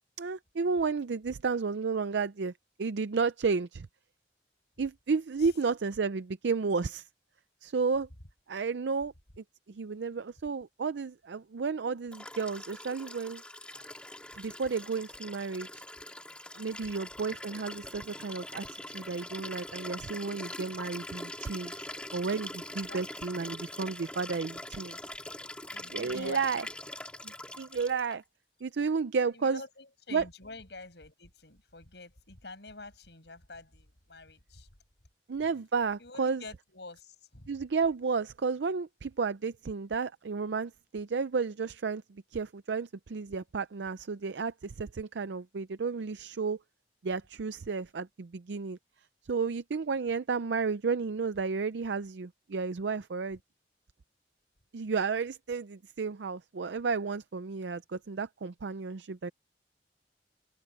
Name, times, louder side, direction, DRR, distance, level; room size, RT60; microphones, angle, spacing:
voice 1, 0.2-2.5 2.8-3.9 4.8-7.1 7.6-8.1 8.5-13.4 14.3-15.8 16.6-21.9 22.1-25.0 25.9-26.6 27.2-28.2 28.6-29.6 30.1-30.2 35.3-36.4 37.5-46.6 47.0-48.8 49.3-53.4 54.7-59.3, right 5 dB, 85° right, 0.5 m, -32 dB
Liquid, 12.1-28.2 29.4-29.5, left 1 dB, 5° left, 1.8 m, -43 dB
voice 2, 25.7-26.6 29.3-34.7 36.0-37.5, left 3 dB, 75° left, 6.2 m, -47 dB
open air
head